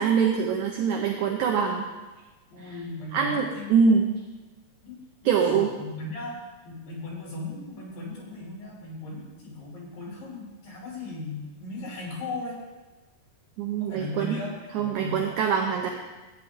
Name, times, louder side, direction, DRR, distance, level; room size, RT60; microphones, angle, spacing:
voice 1, 0.0-1.9 3.1-4.1 5.2-5.7 13.6-14.4 14.7-15.9, right 6 dB, 75° right, 2 dB, 1.8 m, -24 dB
voice 2, 2.5-3.7 4.8-5.0 5.2-12.6 13.8-15.4, left 2 dB, 65° left, -4 dB, 4.7 m, -37 dB
14.5 x 9.5 x 3.6 m, 1.2 s
omnidirectional pair, 4.3 m